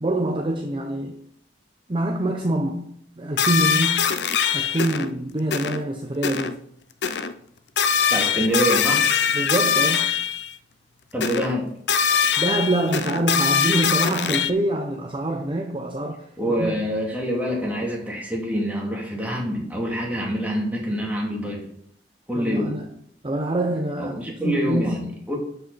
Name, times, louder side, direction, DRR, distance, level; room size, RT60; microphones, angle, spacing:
voice 1, 0.0-1.2 1.9-2.9 3.2-4.1 4.5-6.6 9.3-10.1 12.4-16.3 16.6-16.8 22.3-22.8 23.2-25.1, right 1 dB, 30° right, 0.7 m, -25 dB
sound 1, 3.4-5.1 5.5-5.8 6.2-6.5 7.0-7.3 7.8-10.5 11.2-11.5 11.9-14.5, left 7 dB, 70° left, 0.6 m, -22 dB
voice 2, 8.1-9.0 11.1-11.7 16.4-21.7 22.3-22.8 24.0-25.4, equal, 10° right, 2.5 m, -26 dB
12.0 x 5.6 x 4.1 m
head